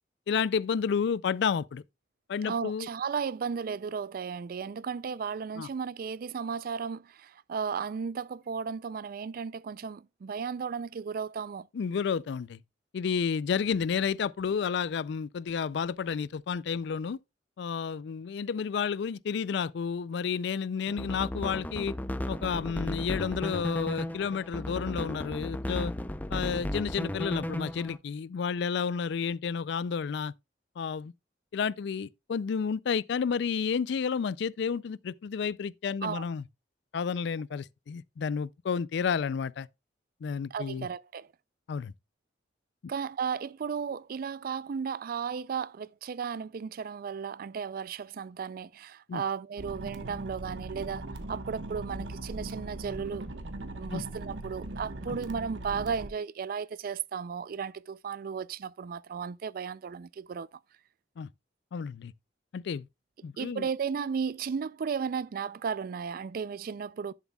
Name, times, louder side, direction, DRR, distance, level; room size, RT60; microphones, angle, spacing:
voice 1, 0.3-1.8 2.3-2.9 5.6-5.7 11.7-12.6 12.9-17.2 17.6-21.9 22.3-25.9 26.3-30.3 30.8-31.1 31.5-36.4 36.9-39.7 40.2-40.9 41.7-41.9 49.1-49.2 53.9-54.0 61.2-61.3 61.7-62.1 62.5-62.9 63.2-63.7, left 6 dB, 65° left, 0.4 m, -31 dB
voice 2, 2.4-11.7 36.0-36.3 40.5-41.3 42.9-53.3 53.7-60.6 63.4-67.1, right 6 dB, 50° right, 0.4 m, -35 dB
sound 1, 20.9-28.0, left 1 dB, 10° left, 0.5 m, -35 dB
sound 2, 49.6-56.1, right 2 dB, 75° right, 1.2 m, -39 dB
11.0 x 7.1 x 2.3 m
head